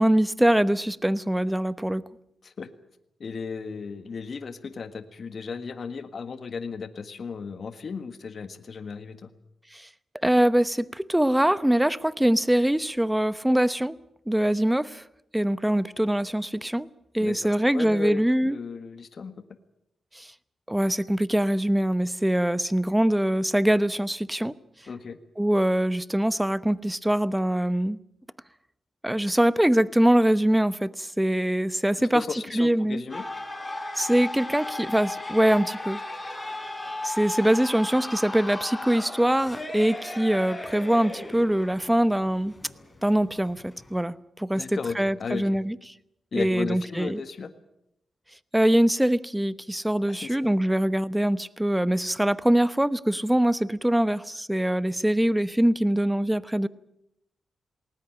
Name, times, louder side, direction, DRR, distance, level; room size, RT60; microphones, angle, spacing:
voice 1, 0.0-2.0 9.7-9.9 10.2-14.0 14.3-15.0 15.3-16.9 17.1-18.6 20.1-20.3 20.7-24.5 25.4-28.0 29.0-32.2 32.5-33.0 34.0-36.0 37.0-42.5 43.0-44.6 45.0-45.8 46.3-47.2 48.5-56.7, right 1 dB, 5° right, 0.9 m, -23 dB
voice 2, 3.2-9.3 17.2-17.4 17.7-19.3 24.9-25.2 31.9-33.2 44.5-45.6 46.3-47.5 50.1-50.5, left 5 dB, 55° left, 1.6 m, -35 dB
sound 1, 33.1-44.0, left 2 dB, 15° left, 4.6 m, -36 dB
20.0 x 19.0 x 9.0 m
cardioid pair, 80°, 0 cm